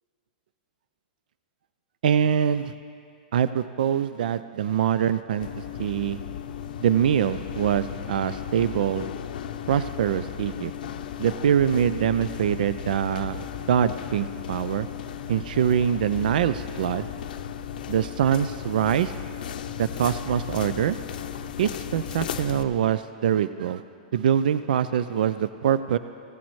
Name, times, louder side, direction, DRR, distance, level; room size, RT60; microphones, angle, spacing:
voice 1, 2.0-2.7 3.3-6.2 6.8-9.1 9.7-10.7 11.2-14.9 15.3-17.1 17.9-19.1 19.8-21.0 21.6-23.8 24.1-26.0, right 9 dB, 75° right, 13 dB, 0.4 m, -24 dB
sound 1, 5.4-22.6, left 8 dB, 75° left, 0.6 m, -35 dB
16.0 x 14.5 x 3.1 m, 2.3 s
supercardioid pair, 165°, 5 cm